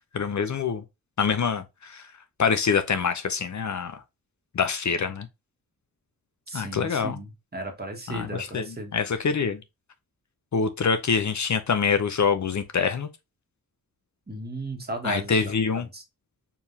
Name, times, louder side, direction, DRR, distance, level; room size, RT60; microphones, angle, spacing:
voice 1, 0.1-0.8 1.2-2.0 2.4-4.0 4.5-5.3 6.5-7.2 8.1-8.7 8.9-9.6 10.5-13.1 15.0-15.9, left 6 dB, 55° left, 0.6 m, -25 dB
voice 2, 6.5-7.3 7.5-8.9 14.3-16.0, right 2 dB, 25° right, 1.5 m, -35 dB
4.6 x 3.5 x 2.7 m
wide cardioid pair, 115°, 35 cm